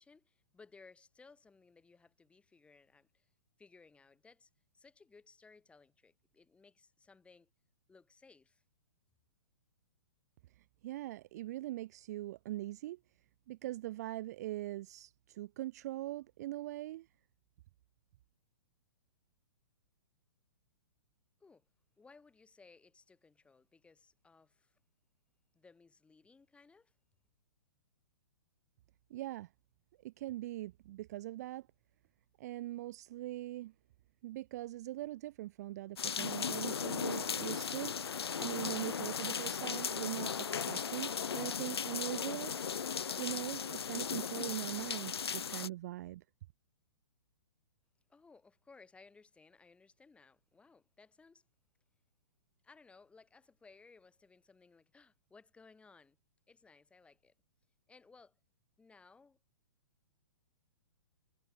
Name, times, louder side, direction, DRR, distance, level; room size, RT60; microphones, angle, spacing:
voice 1, 0.0-3.3 3.6-7.5 7.9-8.6 21.4-21.7 22.0-24.8 25.5-27.0 48.1-51.4 52.6-56.2 56.5-57.3 57.9-58.4 58.8-59.4, left 4 dB, 10° left, 3.5 m, -61 dB
voice 2, 10.6-13.0 13.5-17.1 29.1-29.5 30.0-31.7 32.4-33.7 34.2-37.9 38.4-42.5 43.2-46.2, right 15 dB, 40° right, 0.4 m, -41 dB
sound 1, 36.0-45.7, left 7 dB, 70° left, 0.5 m, -37 dB
figure-of-eight pair, 115°, 14 cm